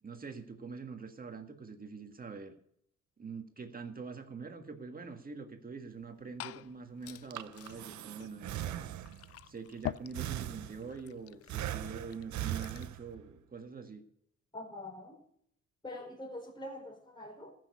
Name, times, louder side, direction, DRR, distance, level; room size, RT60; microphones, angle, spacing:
voice 1, 0.0-2.6 3.2-8.9 9.5-14.0, right 5 dB, 30° right, 6 dB, 1.8 m, -45 dB
Glass / Fill (with liquid), 5.9-13.0, left 12 dB, 50° left, 0.5 m, -47 dB
Breathing, 7.1-9.4 10.1-11.1 11.5-13.3, right 12 dB, 70° right, 0.7 m, -39 dB
voice 2, 14.5-15.2 15.8-17.5, left 1 dB, 15° left, 2 dB, 4.7 m, -44 dB
14.5 x 6.6 x 8.3 m, 0.69 s
cardioid pair, 90°, 30 cm